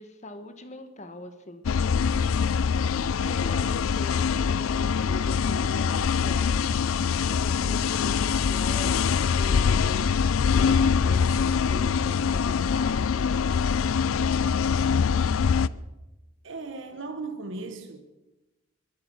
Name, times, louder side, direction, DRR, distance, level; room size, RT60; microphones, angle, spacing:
voice 1, 0.0-1.6 3.2-6.7 7.2-13.3, left 1 dB, 35° left, 1.4 m, -41 dB
sound 1, 1.6-15.7, left 6 dB, 75° left, 0.4 m, -24 dB
voice 2, 16.4-18.0, right 3 dB, 60° right, 1.3 m, -36 dB
23.0 x 8.4 x 6.3 m
head